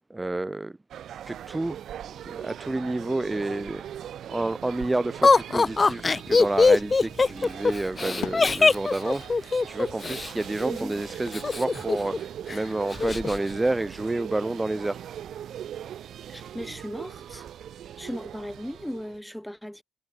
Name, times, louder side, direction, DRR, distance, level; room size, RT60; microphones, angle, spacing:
voice 1, 0.1-0.7 1.3-1.8 2.2-3.8 4.3-15.0, right 2 dB, 15° right, 1.0 m, -29 dB
sound 1, 0.9-19.2, right 10 dB, 70° right, 1.3 m, -40 dB
Laughter, 5.2-10.3 11.3-12.2 12.5-12.6 12.9-13.4, left 4 dB, 30° left, 0.4 m, -21 dB
sound 2, 6.9-7.7 8.0-9.6 9.9-10.0 11.3-11.9, left 12 dB, 75° left, 1.6 m, -43 dB
voice 2, 16.3-17.4 18.0-19.8, equal, 5° left, 1.2 m, -37 dB
cardioid pair, 90°, 0 cm